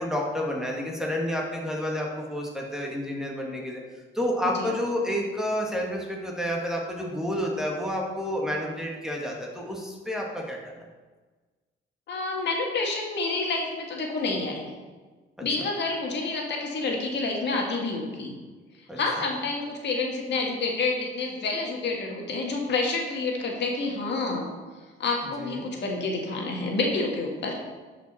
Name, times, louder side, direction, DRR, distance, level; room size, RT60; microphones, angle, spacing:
voice 1, 0.0-3.8 4.1-10.8 15.4-15.5 18.9-19.0 25.4-25.7, equal, 5° right, -2 dB, 1.8 m, -30 dB
voice 2, 12.1-14.7 15.4-18.3 18.8-24.5 25.0-27.6, left 3 dB, 60° left, 0 dB, 1.8 m, -28 dB
11.0 x 5.1 x 4.3 m, 1.3 s
cardioid pair, 90°, 20 cm